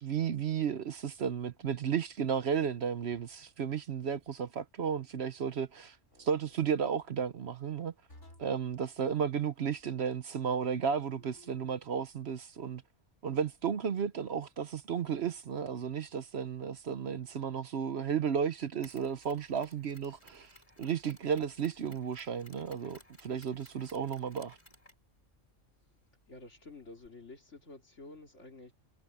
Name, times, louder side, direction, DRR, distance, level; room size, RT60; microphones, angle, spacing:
voice 1, 0.0-7.9 8.4-12.8 13.2-20.5 20.8-24.6, right 7 dB, 60° right, 1.0 m, -33 dB
sound 1, 3.1-3.6 6.1-6.6 8.1-8.6 11.1-11.8, left 2 dB, 85° left, 6.1 m, -58 dB
Mechanisms, 18.8-27.1, left 1 dB, 25° left, 3.6 m, -60 dB
voice 2, 26.3-28.7, left 2 dB, 65° left, 3.4 m, -50 dB
omnidirectional pair, 1.3 m